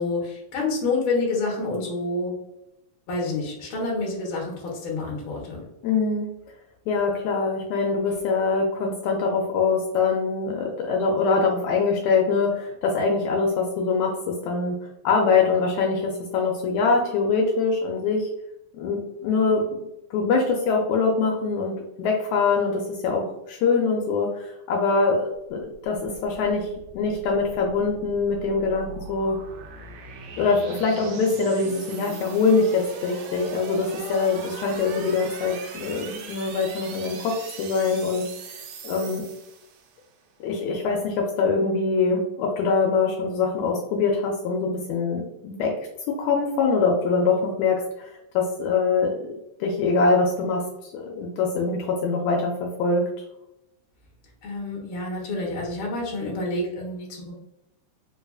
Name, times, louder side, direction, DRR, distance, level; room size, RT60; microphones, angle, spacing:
voice 1, 0.0-2.3 3.1-5.6 54.4-57.3, left 3 dB, 60° left, -3 dB, 1.5 m, -28 dB
voice 2, 5.8-6.3 6.9-14.8 15.0-18.3 18.7-19.6 20.1-26.7 26.9-29.4 30.4-38.3 38.8-39.2 40.4-45.8 46.1-49.2 49.6-53.1, left 4 dB, 80° left, 1 dB, 1.8 m, -23 dB
sound 1, 25.5-40.1, right 5 dB, 75° right, 1.6 m, -40 dB
4.6 x 2.4 x 2.3 m, 0.86 s
omnidirectional pair, 3.4 m